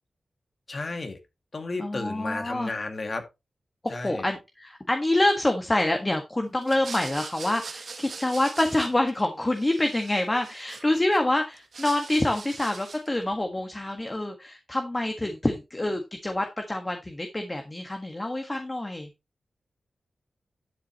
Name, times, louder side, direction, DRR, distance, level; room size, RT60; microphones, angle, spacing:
voice 1, 0.7-1.2 1.5-3.2 3.9-4.3, left 3 dB, 50° left, 2.2 m, -33 dB
voice 2, 1.8-2.7 3.8-19.1, left 1 dB, 25° left, 1.6 m, -26 dB
sound 1, 6.6-9.3 9.5-11.2 11.5-13.2, right 4 dB, 70° right, 1.5 m, -41 dB
12.0 x 7.5 x 3.0 m
cardioid pair, 55°, 0 cm